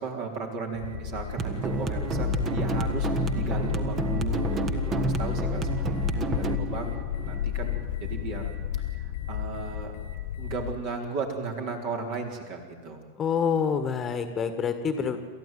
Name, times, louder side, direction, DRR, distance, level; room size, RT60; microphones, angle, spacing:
voice 1, 0.0-7.0 7.2-8.5 9.3-9.9 10.4-13.0 15.0-15.2, right 4 dB, 45° right, 2 dB, 4.4 m, -35 dB
sound 1, 0.7-10.8, left 10 dB, 60° left, 1.5 m, -31 dB
sound 2, 1.4-8.3, right 4 dB, 25° right, 1.6 m, -30 dB
voice 2, 13.2-15.2, left 6 dB, 25° left, 9 dB, 1.7 m, -27 dB
27.5 x 14.5 x 9.4 m, 1.5 s
figure-of-eight pair, 90°, 0 cm